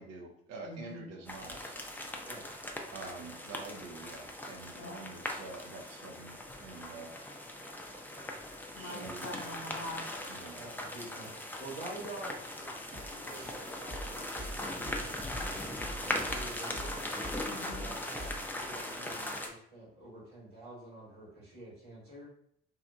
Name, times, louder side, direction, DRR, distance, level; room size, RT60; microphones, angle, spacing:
voice 1, 0.0-1.8 2.9-7.1 8.8-9.4 10.3-10.6, right 3 dB, 60° right, 3 dB, 0.6 m, -47 dB
voice 2, 0.6-1.1 4.7-5.1 8.7-10.1 17.5-17.9, left 2 dB, 50° left, 2 dB, 0.6 m, -44 dB
sound 1, 1.3-19.5, left 1 dB, 5° left, 0.5 m, -40 dB
voice 3, 8.7-9.1 10.5-17.0 17.8-22.3, right 1 dB, 80° right, -7 dB, 1.5 m, -48 dB
sound 2, 12.9-18.5, right 1 dB, 30° right, 0.8 m, -45 dB
2.8 x 2.4 x 2.2 m, 0.68 s
hypercardioid pair, 40°, 29 cm